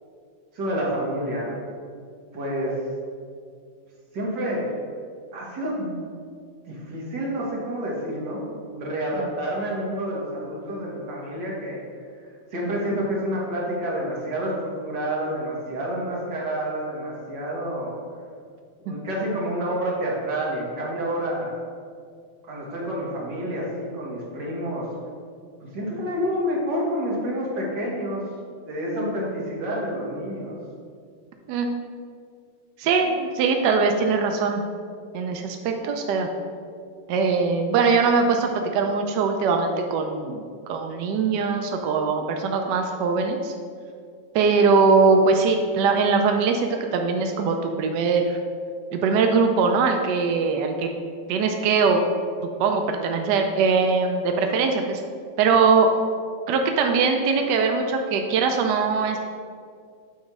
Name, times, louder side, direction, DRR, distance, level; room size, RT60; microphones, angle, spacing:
voice 1, 0.5-1.6 2.3-2.8 4.1-4.7 5.3-6.0 6.7-11.8 12.5-17.9 18.8-21.6 22.5-24.9 25.6-28.2 28.6-30.6, equal, 55° right, -4 dB, 2.1 m, -28 dB
voice 2, 32.8-34.6 35.1-36.3 37.1-43.5 44.3-48.2 48.9-50.9 51.3-52.0 52.6-55.0 55.4-55.9 56.5-59.2, right 4 dB, 75° right, 4 dB, 1.0 m, -21 dB
8.6 x 3.1 x 6.0 m, 2.2 s
omnidirectional pair, 2.4 m